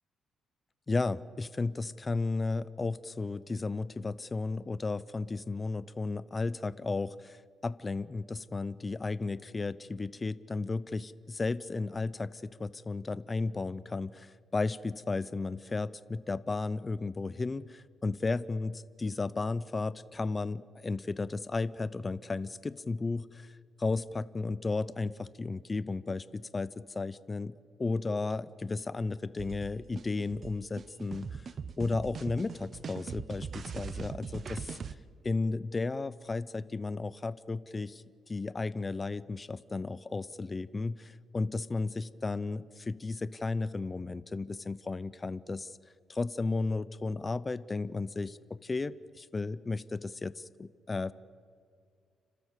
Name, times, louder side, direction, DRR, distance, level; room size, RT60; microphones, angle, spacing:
voice 1, 0.9-31.5 31.8-34.9 35.2-45.7 46.1-51.1, left 3 dB, 25° left, 17 dB, 0.6 m, -34 dB
sound 1, 29.4-34.9, right 6 dB, 50° right, 0.8 m, -41 dB
30.0 x 13.0 x 8.3 m, 2.2 s
cardioid pair, 90°, 0 cm